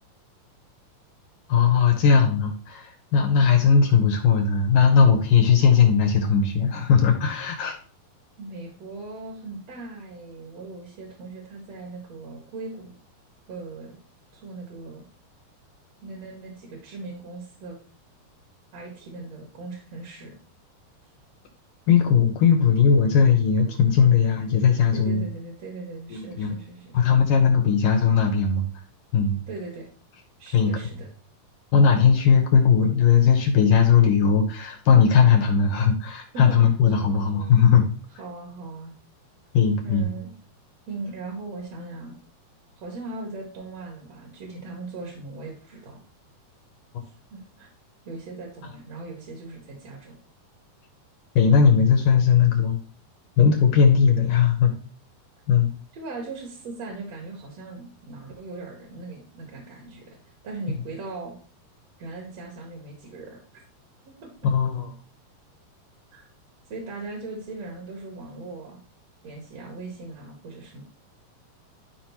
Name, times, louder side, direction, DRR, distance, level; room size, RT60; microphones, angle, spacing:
voice 1, 1.5-7.7 21.9-25.2 26.1-26.5 26.9-28.7 29.1-29.4 30.5-30.7 31.7-37.8 39.5-40.1 51.4-52.8 53.4-54.7 55.5-55.7 64.4-64.9, left 6 dB, 75° left, 4 dB, 2.1 m, -18 dB
voice 2, 8.4-13.0 13.5-14.0 14.3-15.0 16.0-17.8 18.7-20.4 24.9-27.0 29.5-29.9 30.4-31.1 36.3-36.6 36.8-37.6 38.2-38.9 39.8-40.4 40.9-42.1 42.8-46.0 47.1-47.7 48.1-50.2 55.9-60.2 60.4-61.3 62.0-63.4 64.2-64.3 66.1-66.2 66.7-68.8 69.2-70.8, right 3 dB, 50° right, 0 dB, 2.3 m, -39 dB
13.0 x 5.0 x 3.0 m, 0.42 s
omnidirectional pair, 4.6 m